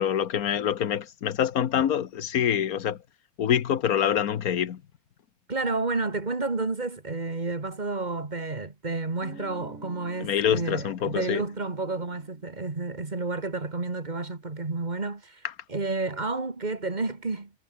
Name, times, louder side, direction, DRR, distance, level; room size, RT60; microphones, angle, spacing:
voice 1, 0.0-3.0 3.4-4.8 10.2-11.4, left 9 dB, 80° left, 1.5 m, -25 dB
voice 2, 5.5-17.5, right 3 dB, 30° right, 2.1 m, -31 dB
Guitar, 9.2-13.8, right 2 dB, 65° right, 4.9 m, -50 dB
omnidirectional pair, 1.5 m